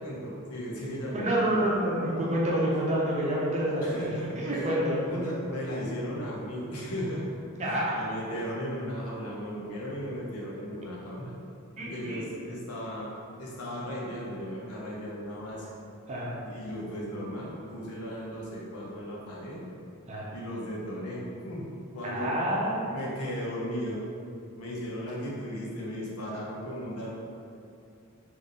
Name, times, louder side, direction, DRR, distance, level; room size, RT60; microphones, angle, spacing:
voice 1, 0.0-1.2 1.6-1.8 3.8-4.7 5.1-11.3 11.8-13.1 13.4-15.7 16.4-19.7 20.3-21.7 21.9-22.3 22.9-24.0 24.6-27.1, equal, 80° left, -4 dB, 0.9 m, -36 dB
voice 2, 1.1-5.0 7.6-8.0 11.8-12.2 16.1-16.3 20.1-20.3 22.0-23.0, right 1 dB, 30° right, -5 dB, 0.6 m, -28 dB
3.5 x 2.6 x 3.9 m, 2.5 s
head